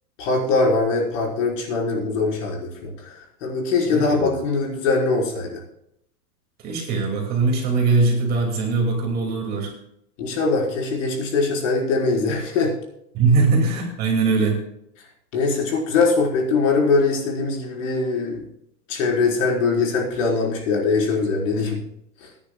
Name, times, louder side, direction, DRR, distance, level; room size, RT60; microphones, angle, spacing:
voice 1, 0.2-3.1 3.4-5.6 10.2-12.7 15.3-18.4 18.9-21.8, left 4 dB, 50° left, -2 dB, 4.5 m, -22 dB
voice 2, 3.9-4.4 6.6-9.7 13.1-14.6, right 4 dB, 20° right, 0 dB, 2.4 m, -21 dB
22.5 x 10.0 x 2.3 m, 0.76 s
supercardioid pair, 170°, 46 cm